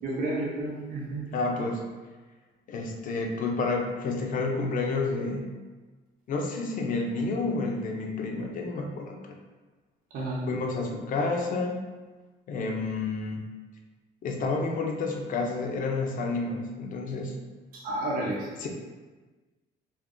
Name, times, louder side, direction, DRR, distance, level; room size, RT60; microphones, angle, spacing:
voice 1, 0.0-1.2 10.1-10.5 17.7-18.5, right 1 dB, 60° right, -4 dB, 0.7 m, -31 dB
voice 2, 1.3-1.8 2.7-5.5 6.3-9.3 10.5-11.8 12.5-13.5 14.2-17.3 18.6-18.7, left 3 dB, 50° left, 1 dB, 0.6 m, -30 dB
2.5 x 2.5 x 3.6 m, 1.3 s
cardioid pair, 110°, 17 cm